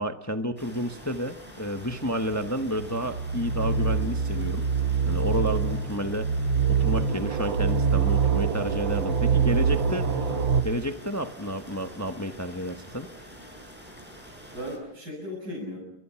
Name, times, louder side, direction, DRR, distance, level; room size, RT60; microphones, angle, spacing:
voice 1, 0.0-4.7 5.1-6.3 6.7-10.0 10.6-13.1, equal, 15° left, 7 dB, 0.6 m, -30 dB
sound 1, 0.6-14.8, equal, 5° right, 7.6 m, -46 dB
sound 2, 1.8-10.6, right 6 dB, 65° right, 2.1 m, -25 dB
voice 2, 5.3-5.6 9.4-10.4 14.5-15.8, equal, 45° right, -4 dB, 7.8 m, -37 dB
29.5 x 24.0 x 5.8 m, 0.85 s
omnidirectional pair, 2.3 m